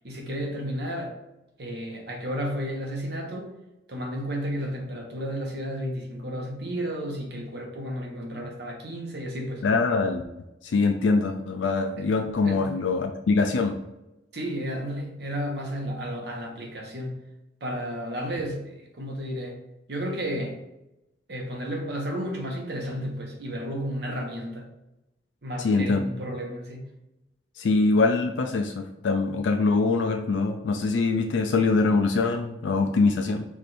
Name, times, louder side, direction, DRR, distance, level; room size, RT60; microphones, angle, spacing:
voice 1, 0.0-1.1 1.6-3.5 3.9-9.6 12.0-12.1 12.4-12.7 14.3-17.2 17.6-19.6 19.9-20.6 21.3-24.7 25.4-26.9, equal, 60° right, 1 dB, 1.1 m, -32 dB
voice 2, 9.6-10.2 10.6-13.8 25.6-26.0 27.6-33.5, left 3 dB, 80° left, 4 dB, 0.4 m, -23 dB
4.8 x 2.6 x 4.2 m, 0.95 s
head